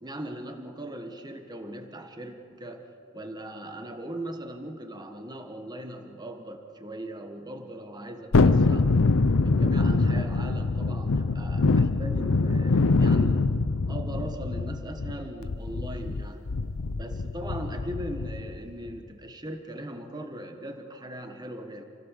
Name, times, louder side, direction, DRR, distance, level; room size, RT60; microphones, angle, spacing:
voice 1, 0.0-2.9 3.1-8.9 9.4-13.4 13.9-16.5 16.9-21.8, right 1 dB, 20° right, 5 dB, 1.4 m, -39 dB
Thunderstorm, 8.3-18.6 18.9-19.0, left 3 dB, 75° left, 0.7 m, -24 dB
28.5 x 16.0 x 6.6 m, 2.5 s
head